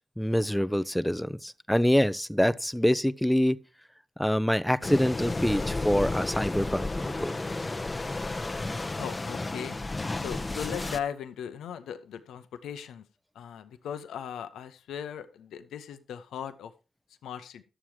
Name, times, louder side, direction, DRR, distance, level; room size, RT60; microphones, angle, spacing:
voice 1, 0.2-3.6 4.2-7.3, equal, 5° left, 0.7 m, -25 dB
sound 1, 4.8-11.0, left 2 dB, 30° left, 0.9 m, -32 dB
voice 2, 9.0-9.8 10.2-13.0 13.3-16.7 17.2-17.6, left 8 dB, 80° left, 0.8 m, -38 dB
11.5 x 7.2 x 4.7 m
supercardioid pair, 40°, 0 cm